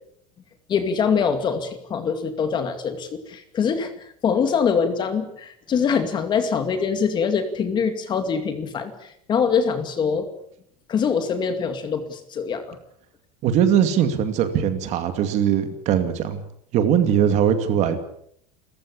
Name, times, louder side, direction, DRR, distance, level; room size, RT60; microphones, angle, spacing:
voice 1, 0.7-10.3 10.9-12.8, left 6 dB, 20° left, 8 dB, 2.3 m, -24 dB
voice 2, 13.4-16.4 16.7-18.0, right 9 dB, 35° right, 9 dB, 2.4 m, -20 dB
30.0 x 15.0 x 8.5 m, 0.70 s
supercardioid pair, 175°, 20 cm